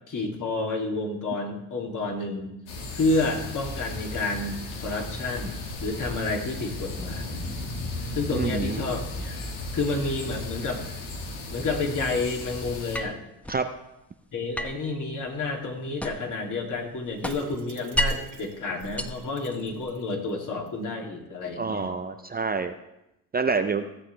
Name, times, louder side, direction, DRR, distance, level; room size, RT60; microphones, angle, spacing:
voice 1, 0.1-2.5 2.9-7.5 8.1-9.4 9.7-10.8 11.5-13.2 14.3-21.9, left 3 dB, 45° left, 0 dB, 2.8 m, -30 dB
sound 1, 2.7-13.0, left 2 dB, 80° left, 2.0 m, -35 dB
voice 2, 8.3-9.0 13.5-13.7 21.6-22.7 23.3-23.8, right 4 dB, 20° right, 8 dB, 0.6 m, -27 dB
sound 2, 12.9-13.7 14.5-16.4 16.7-18.4 18.8-19.9, equal, 5° left, 1.0 m, -32 dB
sound 3, 17.2-20.3 20.7-20.8 21.1-21.2, right 7 dB, 75° right, 1.9 m, -46 dB
16.0 x 7.3 x 3.4 m, 0.89 s
supercardioid pair, 65°, 42 cm